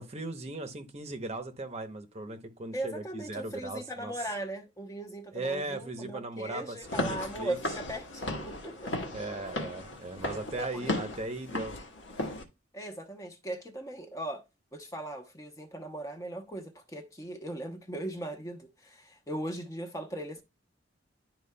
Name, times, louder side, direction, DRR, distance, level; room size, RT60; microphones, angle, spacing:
voice 1, 0.0-4.1 5.3-7.6 9.1-11.8, right 2 dB, 35° right, 0.8 m, -38 dB
voice 2, 2.7-9.3 10.5-11.0 12.7-14.4 14.7-20.4, right 1 dB, 15° left, 0.8 m, -38 dB
Walk footsteps / Siren, 6.8-12.4, left 1 dB, 85° left, 1.4 m, -36 dB
11.0 x 4.5 x 2.2 m
head